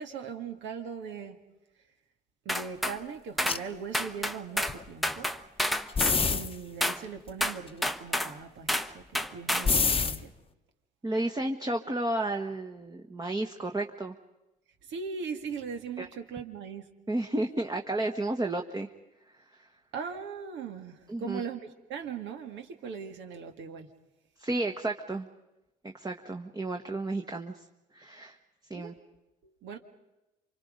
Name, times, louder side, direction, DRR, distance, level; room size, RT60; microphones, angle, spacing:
voice 1, 0.0-1.4 2.5-5.3 6.3-10.3 14.9-16.9 19.9-21.6 21.9-23.9 28.7-28.9 29.4-29.8, right 6 dB, 65° right, 5 dB, 2.1 m, -39 dB
sound 1, 2.5-3.0 3.4-3.6 3.9-4.8 5.0-6.2 6.8-7.0 7.4-8.3 8.7-8.9 9.2-9.7, equal, ahead, 0.9 m, -29 dB
sound 2, 3.5-3.6 4.7-4.8 5.1-5.2 5.7-6.5 7.3-7.5 9.5-10.2, left 5 dB, 25° left, 1.0 m, -26 dB
voice 2, 11.0-14.1 16.0-16.1 17.1-18.9 21.1-21.4 24.4-25.3 25.8-27.6 27.9-28.4 28.7-28.9, right 2 dB, 20° right, 3 dB, 1.3 m, -32 dB
28.0 x 24.5 x 5.2 m, 0.98 s
hypercardioid pair, 65°, 20 cm